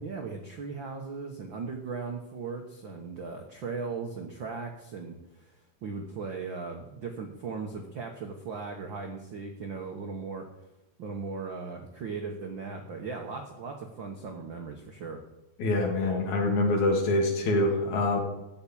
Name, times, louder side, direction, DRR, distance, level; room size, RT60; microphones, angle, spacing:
voice 1, 0.0-5.5 5.8-10.5 11.0-15.2, right 4 dB, 85° right, 3 dB, 1.0 m, -38 dB
voice 2, 15.6-18.2, left 2 dB, 60° left, 2 dB, 3.2 m, -25 dB
14.0 x 5.9 x 8.6 m, 1.0 s
omnidirectional pair, 4.0 m